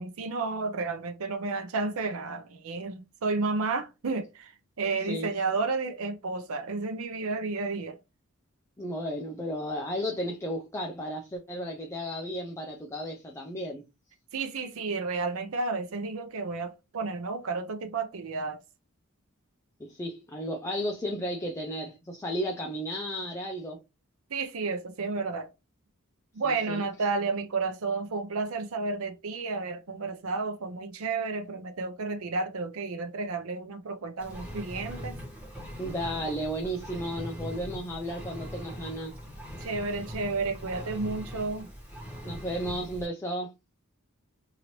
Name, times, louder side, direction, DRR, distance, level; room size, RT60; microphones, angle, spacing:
voice 1, 0.0-4.5 4.8-8.0 14.3-18.6 24.3-25.5 26.3-35.1 39.6-41.7, right 3 dB, 70° right, 0.6 m, -31 dB
voice 2, 8.8-13.8 19.8-23.8 26.4-27.1 35.8-39.1 42.3-43.5, equal, 15° left, 0.4 m, -34 dB
Engine, 34.2-43.1, equal, 5° right, 1.3 m, -41 dB
2.9 x 2.7 x 3.0 m
head